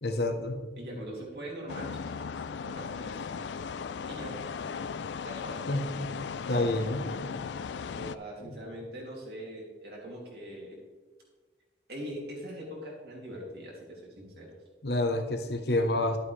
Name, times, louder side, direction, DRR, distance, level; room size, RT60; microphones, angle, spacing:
voice 1, 0.0-0.7 5.7-6.1 6.5-7.2 8.4-8.6 14.8-16.2, left 2 dB, 70° left, 5 dB, 1.0 m, -29 dB
voice 2, 0.8-1.9 2.3-3.3 4.1-4.3 5.2-5.7 8.0-10.8 11.9-14.5, equal, 65° right, -3 dB, 2.9 m, -42 dB
sound 1, 1.7-8.2, left 6 dB, 90° left, 0.4 m, -37 dB
12.0 x 8.1 x 3.3 m, 1.4 s
head